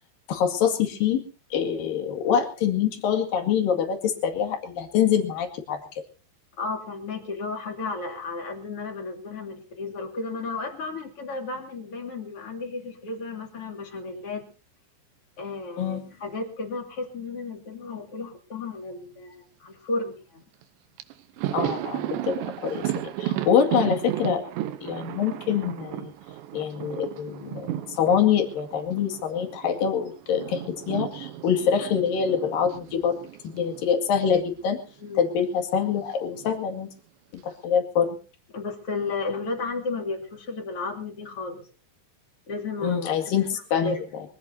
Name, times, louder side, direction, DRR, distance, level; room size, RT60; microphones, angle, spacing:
voice 1, 0.3-1.2 1.5-5.8 15.8-16.0 21.5-22.8 23.2-24.4 24.8-26.1 26.5-27.7 27.9-33.2 33.4-34.8 35.2-36.9 37.3-38.2 42.8-44.0, left 8 dB, 60° left, 4 dB, 3.6 m, -25 dB
voice 2, 6.6-14.4 15.4-20.4 35.0-35.3 38.5-41.7 42.5-43.0 43.3-43.4 43.8-44.0, left 3 dB, 35° left, 2 dB, 3.2 m, -33 dB
Thunder, 20.6-20.7 21.0-29.8 30.1-34.4 34.6-34.8 36.0-36.7, right 13 dB, 90° right, 3.3 m, -34 dB
24.0 x 16.5 x 2.8 m, 0.36 s
omnidirectional pair, 5.0 m